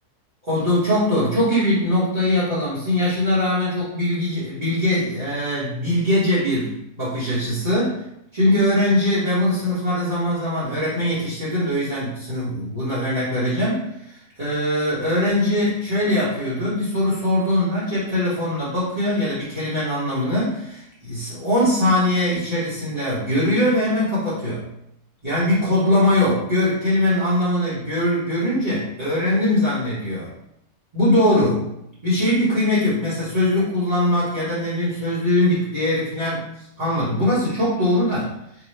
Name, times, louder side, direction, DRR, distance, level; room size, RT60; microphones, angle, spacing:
voice 1, 0.4-8.0 8.3-24.6 25.2-30.3 30.9-31.7 32.0-38.3, left 1 dB, 25° right, -11 dB, 1.3 m, -21 dB
4.8 x 2.4 x 3.3 m, 0.80 s
omnidirectional pair, 1.7 m